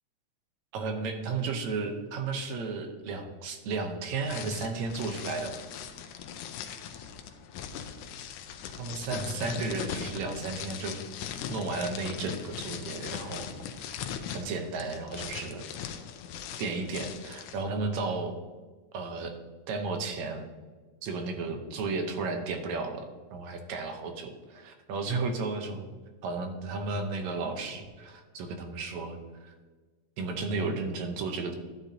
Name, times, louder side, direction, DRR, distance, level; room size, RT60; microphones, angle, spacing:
voice 1, 0.7-5.6 8.8-11.0 11.5-13.5 13.8-14.0 14.3-15.7 16.6-18.4 18.9-19.3 19.7-20.4 21.0-25.9 26.2-29.2 29.4-29.5 30.2-31.5, right 3 dB, 70° right, 5 dB, 2.0 m, -33 dB
sound 1, 4.2-17.6, left 8 dB, 85° left, 2.2 m, -40 dB
11.5 x 9.1 x 2.8 m, 1.4 s
omnidirectional pair, 3.5 m